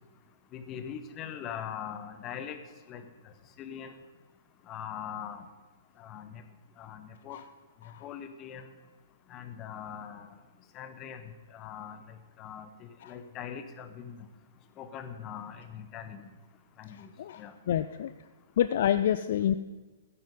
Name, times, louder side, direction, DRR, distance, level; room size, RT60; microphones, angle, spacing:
voice 1, 0.5-2.6 2.9-3.0 3.6-3.9 4.7-5.4 6.0-6.4 6.8-7.4 8.0-8.6 9.3-10.3 10.7-11.2 11.5-12.0 12.4-12.7 13.1-14.1 14.8-16.3 16.8-17.1 17.4-17.5, left 8 dB, 25° left, 10 dB, 1.0 m, -41 dB
voice 2, 16.9-18.1 18.6-19.5, left 10 dB, 50° left, 12 dB, 0.4 m, -28 dB
14.5 x 9.3 x 5.3 m, 1.2 s
figure-of-eight pair, 115°, 0 cm